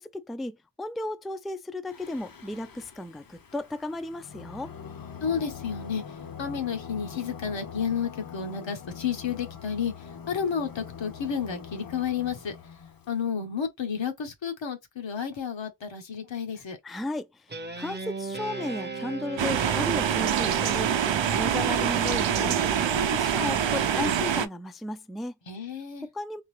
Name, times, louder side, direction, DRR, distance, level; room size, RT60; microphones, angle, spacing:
voice 1, 0.0-4.7 16.8-17.5 17.8-21.0 21.3-25.3 26.0-26.4, left 1 dB, ahead, 0.3 m, -34 dB
Singing, 1.9-13.2, left 7 dB, 50° left, 0.8 m, -43 dB
voice 2, 5.2-6.0 6.4-9.9 10.3-12.5 13.1-16.8 25.5-26.1, left 7 dB, 80° left, 1.2 m, -31 dB
Guitar, 17.5-22.2, right 4 dB, 25° right, 0.7 m, -38 dB
sound 1, 19.4-24.5, right 8 dB, 80° right, 0.6 m, -25 dB
3.8 x 2.8 x 3.2 m
wide cardioid pair, 65°, 44 cm